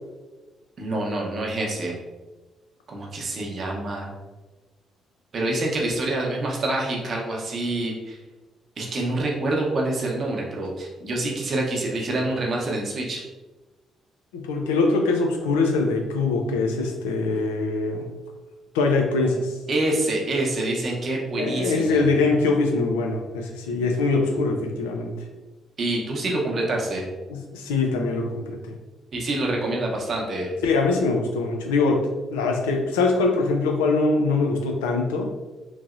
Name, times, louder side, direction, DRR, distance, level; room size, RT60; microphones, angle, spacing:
voice 1, 0.8-2.0 2.9-4.1 5.3-8.2 8.8-13.2 19.7-22.1 25.8-27.1 29.1-30.5, right 2 dB, 50° right, -1 dB, 0.7 m, -26 dB
voice 2, 14.3-18.0 18.7-19.6 21.4-25.1 27.3-28.7 30.6-35.3, left 3 dB, 85° left, 3 dB, 0.4 m, -23 dB
3.0 x 2.7 x 2.4 m, 1.2 s
hypercardioid pair, 45°, 0 cm